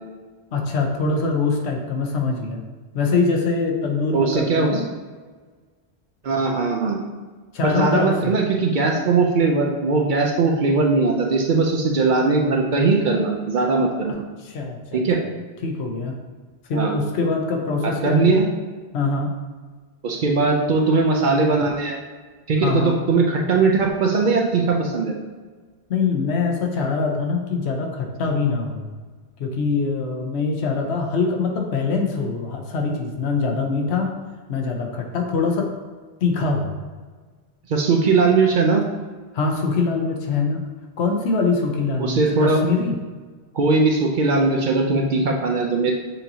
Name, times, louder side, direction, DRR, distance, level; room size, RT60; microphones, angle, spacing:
voice 1, 0.5-2.6 2.9-4.9 7.5-8.3 14.4-15.0 15.6-16.2 16.7-18.5 18.9-19.3 22.6-23.0 25.9-28.9 29.4-34.1 34.5-35.7 36.2-36.7 39.3-40.6 41.0-43.0, left 4 dB, 80° left, 2 dB, 1.0 m, -23 dB
voice 2, 4.1-4.8 6.2-7.0 7.6-14.2 14.9-15.2 16.7-16.9 17.8-18.5 20.0-22.0 22.5-25.1 37.7-38.8 42.0-42.6 43.5-45.9, right 4 dB, 60° right, 1 dB, 0.6 m, -19 dB
6.8 x 2.6 x 2.8 m, 1.4 s
omnidirectional pair, 1.1 m